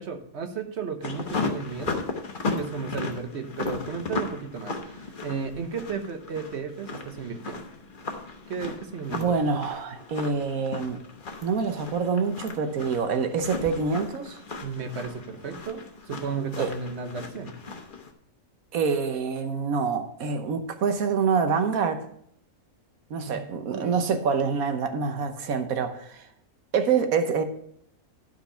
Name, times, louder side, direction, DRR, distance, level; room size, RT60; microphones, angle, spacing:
voice 1, 0.0-2.0 2.5-7.7 8.5-9.4 14.6-17.5 23.3-23.9, right 5 dB, 55° right, 1.2 m, -34 dB
sound 1, 1.0-18.1, left 3 dB, 40° left, 1.1 m, -36 dB
voice 2, 9.1-11.0 11.4-14.4 16.6-16.7 18.7-22.1 23.1-26.3 26.7-27.4, right 5 dB, 85° right, 1.4 m, -26 dB
11.5 x 4.7 x 5.5 m
omnidirectional pair, 1.4 m